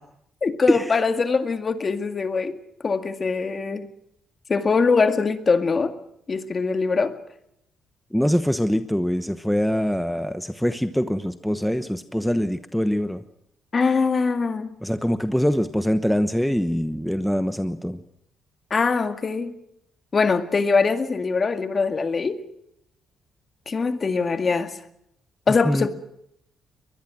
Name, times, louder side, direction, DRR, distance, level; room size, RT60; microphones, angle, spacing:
voice 1, 0.4-2.6 2.8-3.9 4.5-5.9 6.3-7.1 13.7-14.7 18.7-19.5 20.1-22.4 23.7-24.8 25.5-25.9, left 4 dB, 35° left, 9 dB, 2.0 m, -22 dB
voice 2, 8.1-13.2 14.8-18.0 25.6-25.9, equal, ahead, 10 dB, 1.1 m, -23 dB
23.0 x 20.5 x 6.2 m, 0.77 s
cardioid pair, 90°, 0 cm